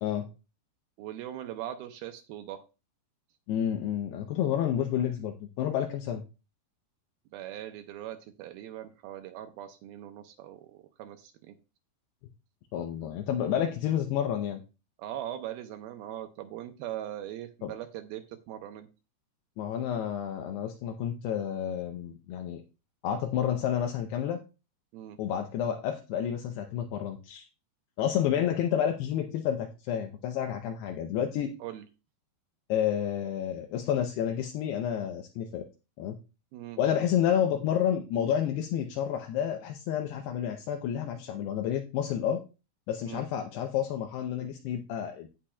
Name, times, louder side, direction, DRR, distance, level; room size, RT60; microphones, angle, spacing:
voice 1, 1.0-2.6 7.3-11.6 15.0-18.9 24.9-25.2 31.6-31.9 36.5-36.8 43.1-43.2, right 12 dB, 80° right, 7 dB, 2.2 m, -40 dB
voice 2, 3.5-6.2 12.7-14.6 17.6-17.7 19.6-22.6 23.0-24.4 25.2-27.5 28.0-31.5 32.7-35.6 36.0-36.2 36.8-42.4 42.9-45.3, left 9 dB, 80° left, 4 dB, 2.7 m, -30 dB
16.5 x 5.7 x 2.3 m, 0.30 s
omnidirectional pair, 4.9 m